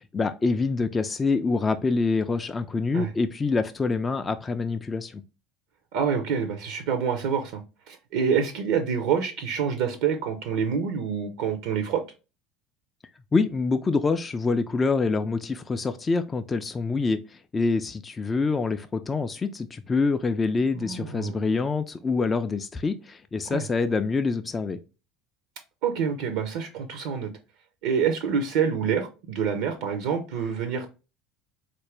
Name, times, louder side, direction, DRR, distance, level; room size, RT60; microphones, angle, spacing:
voice 1, 0.1-5.2 13.3-24.8, left 4 dB, 25° left, 0.3 m, -26 dB
voice 2, 5.9-12.0 20.8-21.4 23.5-23.6 25.8-27.3 27.8-30.9, right 7 dB, 65° right, 0.5 m, -27 dB
4.1 x 2.5 x 3.2 m
figure-of-eight pair, 65°, 0 cm